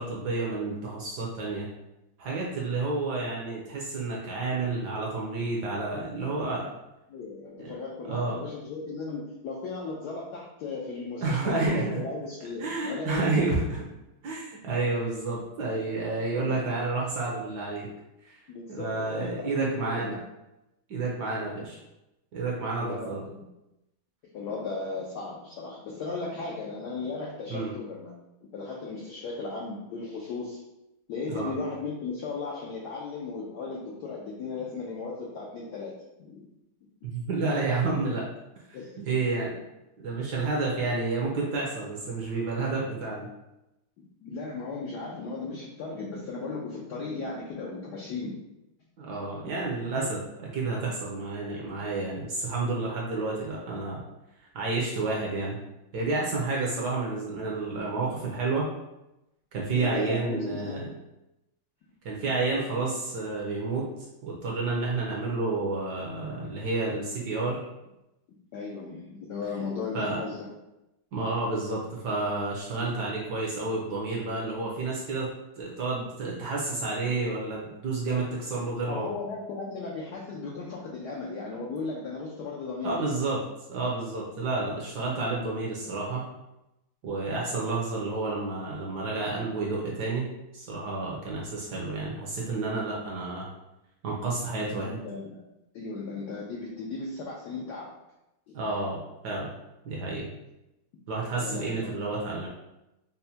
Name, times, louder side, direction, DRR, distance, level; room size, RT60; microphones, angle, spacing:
voice 1, 0.0-1.7 2.2-6.7 7.6-7.8 8.1-8.4 11.2-12.0 12.6-13.8 14.2-17.9 18.2-18.4 18.7-20.2 20.9-21.8 22.3-23.2 27.5-27.7 31.3-31.5 37.0-38.2 39.0-39.6 40.0-43.3 49.0-54.0 54.5-55.6 55.9-58.7 59.5-60.9 62.0-63.9 64.2-67.6 69.9-70.2 71.1-75.3 75.6-79.1 82.8-83.4 83.7-86.2 87.0-90.3 90.5-93.5 94.0-95.0 98.5-99.0 99.2-99.5 99.8-100.3 101.1-102.5, right 3 dB, 65° right, -3 dB, 1.1 m, -30 dB
voice 2, 7.1-13.4 16.3-16.6 18.5-20.1 22.8-23.5 24.3-28.1 28.5-30.6 31.1-35.9 36.2-36.5 38.7-39.0 44.2-48.3 49.2-49.3 59.7-60.9 68.5-70.5 72.8-72.9 78.9-83.1 94.6-95.4 95.7-97.9 98.5-98.6 101.4-101.9, left 3 dB, 80° left, -3 dB, 0.9 m, -36 dB
5.4 x 2.1 x 2.7 m, 0.92 s
omnidirectional pair, 2.3 m